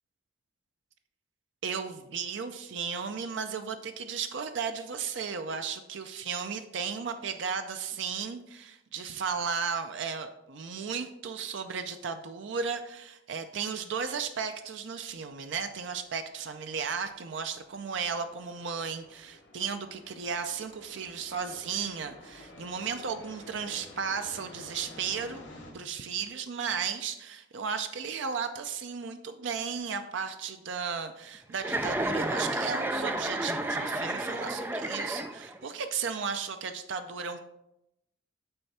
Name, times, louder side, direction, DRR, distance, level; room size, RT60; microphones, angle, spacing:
voice 1, 1.6-25.4 25.7-37.4, right 6 dB, 70° right, 8 dB, 0.5 m, -35 dB
sound 1, 15.1-25.7, left 1 dB, 75° left, 1.4 m, -52 dB
Chuckle chortle, 31.6-35.7, right 1 dB, 10° right, 0.3 m, -31 dB
8.9 x 3.4 x 4.2 m, 0.85 s
head